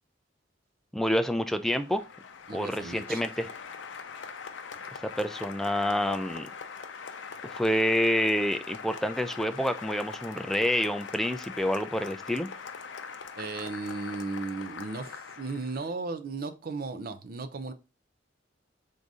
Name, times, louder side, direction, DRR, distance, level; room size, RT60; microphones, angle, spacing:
voice 1, 0.9-2.0 2.5-3.5 5.0-6.5 7.5-12.5, equal, ahead, 0.3 m, -28 dB
Applause, 1.4-15.9, left 5 dB, 80° left, 0.5 m, -42 dB
voice 2, 2.5-3.5 13.4-17.7, right 3 dB, 55° right, 0.5 m, -36 dB
3.8 x 2.7 x 4.7 m
head